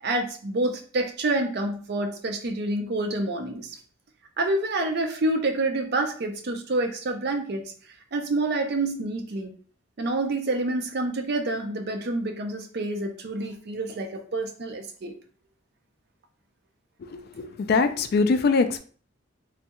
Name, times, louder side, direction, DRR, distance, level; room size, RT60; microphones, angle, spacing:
voice 1, 0.0-3.8 4.4-7.7 8.1-9.5 10.0-15.1, right 2 dB, 55° right, 4 dB, 0.5 m, -28 dB
voice 2, 17.1-18.8, left 4 dB, 50° left, 9 dB, 0.3 m, -23 dB
3.2 x 2.3 x 2.9 m, 0.43 s
head